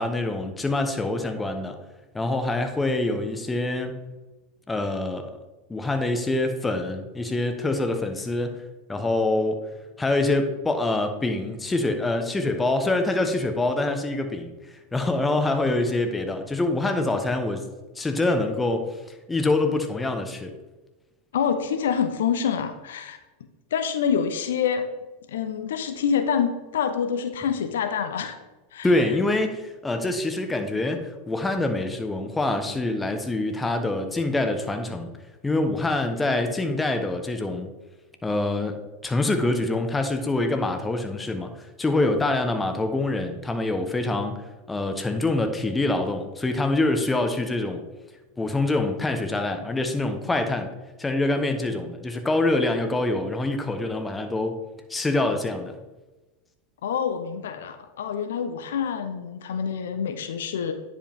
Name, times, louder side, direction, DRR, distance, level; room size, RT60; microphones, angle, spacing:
voice 1, 0.0-1.8 2.1-4.0 4.7-5.4 5.7-8.6 8.9-9.6 10.0-14.5 14.9-17.6 18.0-19.0 19.3-20.5 28.8-35.1 35.4-37.7 38.2-44.4 44.7-47.8 48.4-50.7 51.0-54.6 54.9-55.7, left 2 dB, 15° left, 6 dB, 1.0 m, -25 dB
voice 2, 21.3-23.2 23.7-24.9 25.3-28.4 28.7-28.9 56.8-60.7, left 7 dB, 80° left, 8 dB, 0.7 m, -26 dB
10.0 x 5.0 x 3.6 m, 1.1 s
hypercardioid pair, 100°, 0 cm